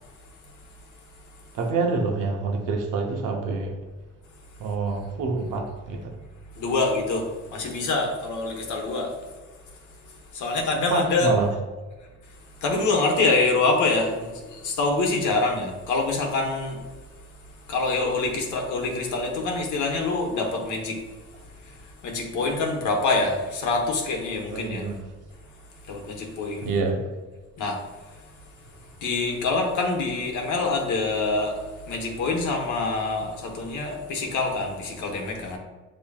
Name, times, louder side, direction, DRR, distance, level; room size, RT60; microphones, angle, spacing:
voice 1, 1.5-3.7 4.6-6.1 10.7-11.5 24.5-25.0 26.6-27.0, right 4 dB, 90° right, 2 dB, 0.8 m, -27 dB
voice 2, 6.5-7.3 7.5-9.1 10.3-11.3 12.6-16.8 17.7-21.0 22.0-24.8 25.9-26.7 27.6-27.8 29.0-31.6 31.9-35.6, left 3 dB, 75° left, 1 dB, 1.1 m, -25 dB
7.1 x 3.0 x 2.3 m, 1.3 s
cardioid pair, 90°, 30 cm